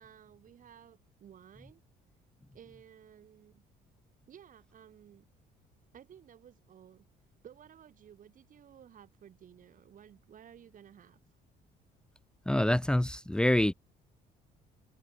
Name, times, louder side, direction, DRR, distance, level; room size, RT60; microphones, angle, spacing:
voice 1, 0.0-1.8 2.5-3.6 4.3-5.2 5.9-7.0 7.4-11.2, right 9 dB, 50° right, 7.8 m, -55 dB
voice 2, 12.5-13.7, left 1 dB, 5° left, 1.8 m, -26 dB
cardioid pair, 110°, 17 cm